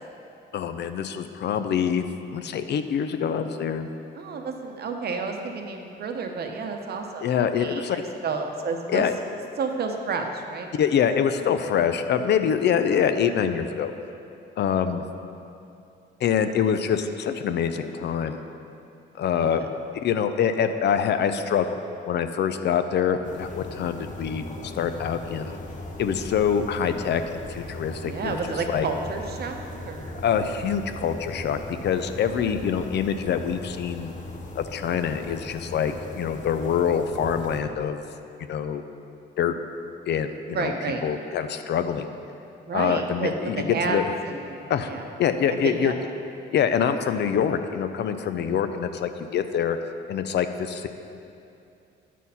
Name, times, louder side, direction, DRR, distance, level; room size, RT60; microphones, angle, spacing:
voice 1, 0.5-2.0 2.3-3.9 7.2-8.0 8.9-9.1 10.7-13.9 14.6-15.0 16.2-18.4 19.2-19.6 20.0-21.8 22.1-25.6 26.0-28.4 28.7-28.9 30.1-34.1 34.6-38.0 38.4-38.8 39.4-39.5 40.0-40.7 41.0-42.1 42.7-43.6 43.8-44.1 44.7-44.9 45.2-45.9 46.5-49.8 50.1-50.9, left 8 dB, 60° left, 9 dB, 0.5 m, -25 dB
voice 2, 4.1-9.1 9.6-10.7 19.5-19.7 28.0-30.2 40.5-41.0 42.6-45.0 45.5-46.0, right 4 dB, 55° right, 3 dB, 0.8 m, -31 dB
sound 1, 23.2-37.6, left 2 dB, 40° left, 0.9 m, -38 dB
9.1 x 4.2 x 5.5 m, 2.7 s
cardioid pair, 90°, 20 cm